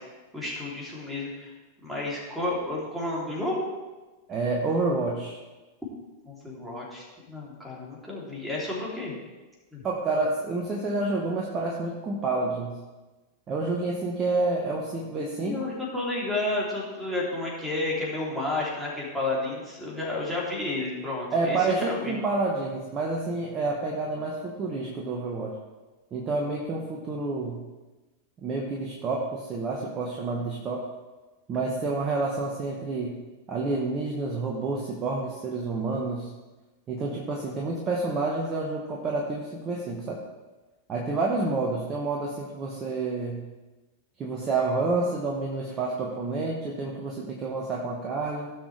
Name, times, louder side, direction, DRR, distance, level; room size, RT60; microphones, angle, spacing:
voice 1, 0.3-1.5 1.8-3.7 6.3-9.1 9.7-9.8 15.1-22.2, left 2 dB, 5° right, -5 dB, 3.1 m, -31 dB
voice 2, 4.3-5.4 9.8-12.8 13.5-15.7 21.3-25.6 26.1-27.6 28.4-30.8 31.5-33.2 33.5-36.3 36.9-40.2 40.9-43.4 44.2-48.5, right 3 dB, 25° right, -2 dB, 1.3 m, -29 dB
16.5 x 6.3 x 3.3 m, 1.2 s
figure-of-eight pair, 90°, 0 cm